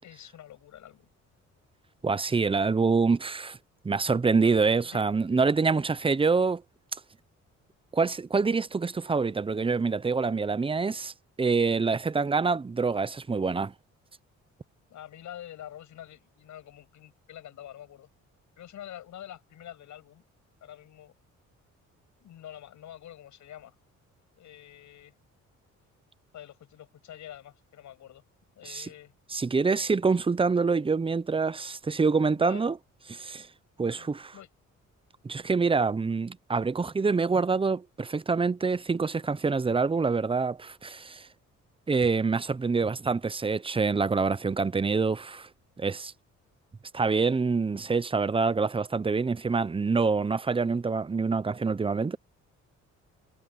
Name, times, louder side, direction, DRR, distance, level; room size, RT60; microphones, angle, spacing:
voice 1, 0.0-1.1 2.3-2.6 4.8-5.0 14.9-18.1 18.6-20.2 20.6-21.1 22.2-23.7 24.4-25.1 26.3-28.2 28.6-29.1 32.3-32.7 33.8-34.5, left 11 dB, 75° left, 7.6 m, -46 dB
voice 2, 2.0-3.6 3.8-6.6 7.9-11.1 11.4-13.7 28.7-28.9 29.3-32.8 33.1-33.5 33.8-34.3 35.2-41.3 41.9-45.5 45.8-46.1 46.9-52.2, right 4 dB, 20° right, 0.7 m, -26 dB
cardioid pair, 90°, 30 cm